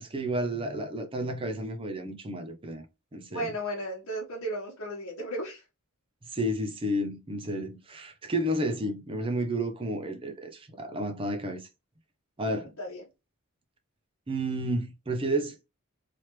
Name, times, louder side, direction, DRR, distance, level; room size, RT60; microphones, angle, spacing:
voice 1, 0.0-2.8 3.1-3.5 6.3-11.7 12.4-12.7 14.3-15.6, right 1 dB, 25° right, 0.6 m, -31 dB
voice 2, 3.3-5.6 12.5-13.0, right 1 dB, 80° left, 1.0 m, -35 dB
3.2 x 2.4 x 3.0 m
head